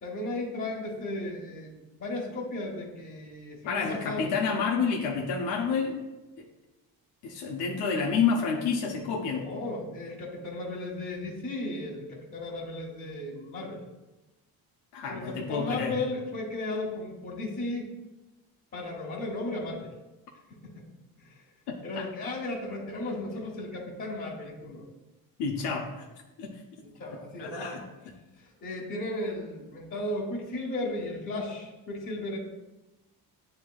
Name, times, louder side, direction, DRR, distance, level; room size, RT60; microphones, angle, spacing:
voice 1, 0.0-4.3 9.3-13.8 15.1-17.9 18.7-19.9 20.5-20.9 21.2-21.4 21.8-24.8 26.8-27.6 28.4-32.4, left 2 dB, 35° left, -8 dB, 1.2 m, -35 dB
voice 2, 3.7-6.0 6.4-6.5 7.2-9.4 14.9-15.9 21.7-22.1 25.4-26.1 26.4-26.6 27.4-28.1, left 5 dB, 90° left, 1 dB, 0.7 m, -29 dB
7.3 x 2.9 x 2.3 m, 1.1 s
cardioid pair, 90°, 39 cm